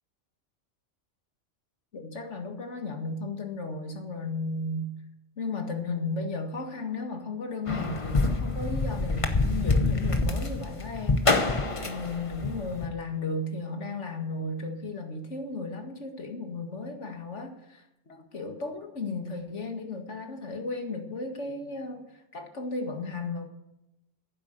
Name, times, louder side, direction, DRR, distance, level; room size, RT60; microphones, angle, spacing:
voice 1, 1.9-4.9 5.4-23.4, left 3 dB, 70° left, 4 dB, 2.1 m, -35 dB
sound 1, 7.7-12.9, left 3 dB, 25° left, 1.1 m, -26 dB
11.5 x 9.9 x 8.1 m, 0.89 s
omnidirectional pair, 1.3 m